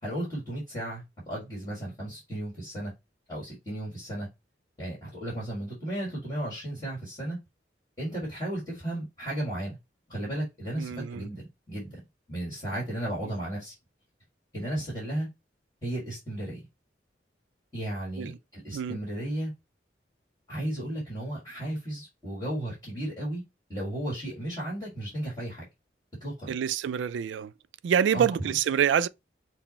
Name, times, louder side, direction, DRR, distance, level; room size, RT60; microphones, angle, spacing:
voice 1, 0.0-2.9 3.3-4.3 4.8-7.4 8.0-9.8 10.1-12.0 12.3-13.7 14.5-15.3 15.8-16.6 17.7-19.5 20.5-23.4 23.7-25.7 26.2-26.5 28.1-28.5, right 1 dB, 20° left, 1.9 m, -34 dB
voice 2, 10.8-11.2 18.2-18.3 18.7-19.0 26.5-27.5 27.8-29.1, right 8 dB, 85° right, 0.3 m, -26 dB
5.9 x 2.0 x 4.2 m
head